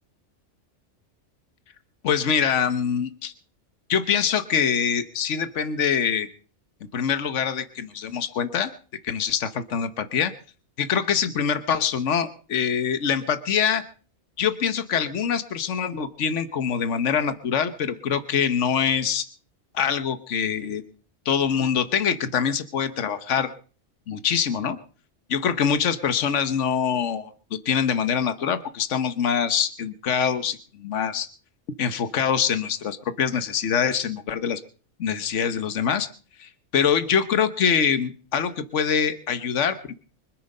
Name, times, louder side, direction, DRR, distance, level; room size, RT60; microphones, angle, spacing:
voice 1, 2.0-3.3 3.9-6.3 6.9-8.7 9.0-10.3 10.8-13.8 14.4-19.3 19.7-20.8 21.2-23.5 24.1-24.8 25.3-27.3 27.6-31.3 31.8-34.6 35.0-36.1 36.4-39.9, left 7 dB, 70° left, 10 dB, 1.4 m, -24 dB
24.5 x 9.3 x 5.4 m, 0.41 s
omnidirectional pair, 1.3 m